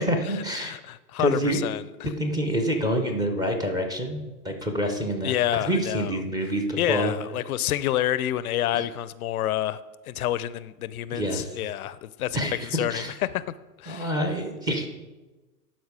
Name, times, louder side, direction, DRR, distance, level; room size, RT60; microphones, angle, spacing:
voice 1, 0.0-0.7 1.2-1.6 2.2-7.1 8.7-8.8 11.1-11.6 12.3-13.1 13.9-14.9, equal, 10° right, 3 dB, 0.5 m, -27 dB
voice 2, 0.6-2.1 5.2-6.2 6.8-9.8 10.1-13.4 13.8-14.1, left 13 dB, 65° left, 17 dB, 0.5 m, -28 dB
11.5 x 4.5 x 4.8 m, 1.2 s
hypercardioid pair, 115°, 49 cm